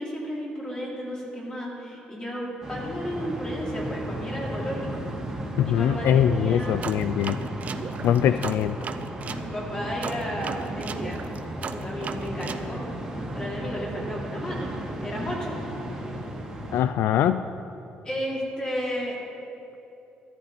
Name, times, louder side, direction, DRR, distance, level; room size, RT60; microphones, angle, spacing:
voice 1, 0.0-4.9 5.6-6.8 8.2-8.4 9.3-11.3 11.7-12.8 13.3-14.7 15.0-15.5 18.0-19.2, equal, 20° left, -4 dB, 3.5 m, -33 dB
sound 1, 2.6-16.8, right 1 dB, 15° right, 2.3 m, -34 dB
voice 2, 5.6-7.4 8.0-8.8 16.7-17.4, left 10 dB, 80° left, 12 dB, 0.3 m, -22 dB
sound 2, 6.8-9.5 10.0-12.7, right 6 dB, 45° right, 0.6 m, -36 dB
13.5 x 13.0 x 4.4 m, 2.9 s
cardioid pair, 120°, 4 cm